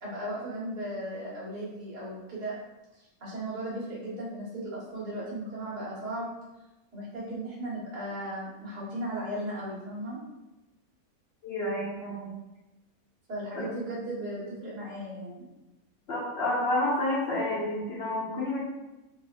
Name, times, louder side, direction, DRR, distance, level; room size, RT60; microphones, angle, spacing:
voice 1, 0.0-2.6 2.9-6.3 6.9-10.2 13.3-15.4 18.3-18.6, right 1 dB, 75° right, -8 dB, 2.1 m, -36 dB
voice 2, 11.4-12.3 13.6-13.7 16.1-18.6, left 1 dB, 55° left, -5 dB, 0.8 m, -29 dB
3.9 x 3.5 x 2.5 m, 1.0 s
omnidirectional pair, 1.7 m